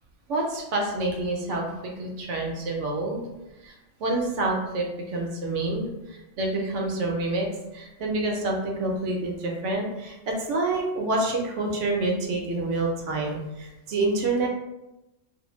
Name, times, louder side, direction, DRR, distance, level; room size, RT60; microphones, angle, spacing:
voice 1, 0.3-3.2 3.6-3.7 4.0-7.5 7.7-14.5, right 2 dB, 75° right, 0 dB, 0.9 m, -27 dB
2.5 x 2.1 x 3.0 m, 0.95 s
omnidirectional pair, 1.3 m